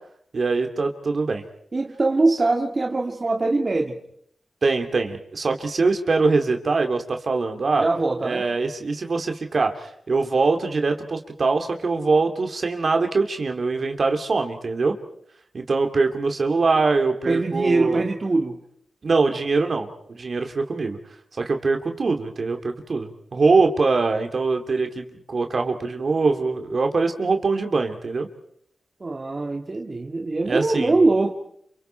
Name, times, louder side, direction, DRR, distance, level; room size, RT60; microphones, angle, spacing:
voice 1, 0.3-1.4 4.6-7.8 8.2-14.9 15.5-18.0 19.0-21.0 21.4-28.3 30.4-31.0, right 4 dB, 55° right, 5 dB, 2.7 m, -23 dB
voice 2, 1.7-4.0 7.8-8.4 17.3-18.6 29.0-31.3, right 2 dB, 40° right, 1 dB, 2.2 m, -22 dB
29.0 x 28.0 x 4.5 m, 0.70 s
cardioid pair, 60°, 0 cm